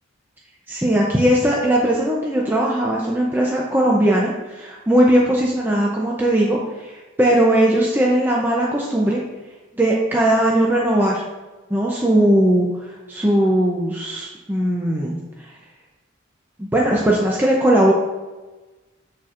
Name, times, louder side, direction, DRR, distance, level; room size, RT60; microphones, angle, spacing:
voice 1, 0.7-9.2 9.7-11.2 11.7-15.6 16.6-17.9, right 1 dB, 10° right, -3 dB, 0.6 m, -19 dB
12.5 x 4.3 x 2.5 m, 1.2 s
head